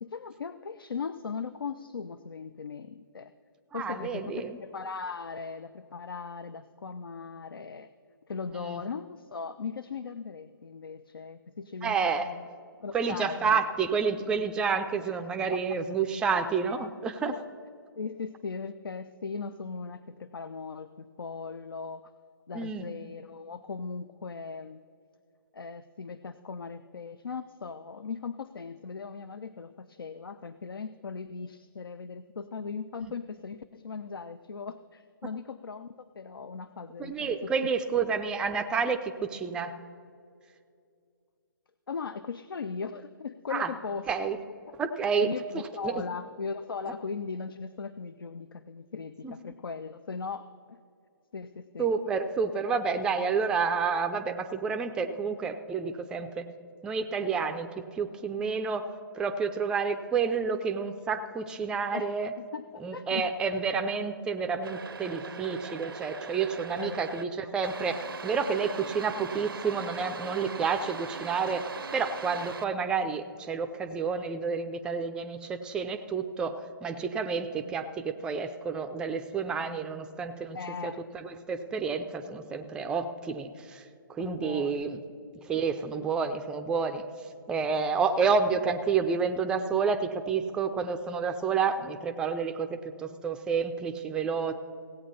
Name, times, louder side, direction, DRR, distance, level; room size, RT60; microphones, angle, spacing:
voice 1, 0.0-3.3 3.7-7.9 8.3-12.5 12.8-13.6 15.0-15.1 15.5-15.6 16.7-16.9 17.2-17.4 18.0-22.1 22.5-24.8 25.5-37.5 38.0-38.2 41.9-44.1 44.5-44.6 45.2-50.8 51.3-51.9 61.9-62.1 62.4-63.3 66.8-67.5 80.5-81.0 84.2-84.9, left 5 dB, 80° left, 13 dB, 0.4 m, -38 dB
voice 2, 3.7-4.6 8.5-8.8 11.8-12.3 12.9-17.3 22.5-22.9 37.0-39.8 43.5-43.7 44.1-44.4 44.8-45.3 45.8-46.0 49.2-49.4 51.8-56.5 56.8-58.9 59.1-62.3 62.8-80.6 80.8-83.8 84.1-85.0 85.5-87.0 87.5-94.5, right 5 dB, 5° right, 7 dB, 0.4 m, -29 dB
sound 1, 64.6-67.2 67.6-72.6, right 5 dB, 75° right, 0.6 m, -40 dB
16.5 x 8.5 x 4.2 m, 2.3 s
figure-of-eight pair, 135°, 12 cm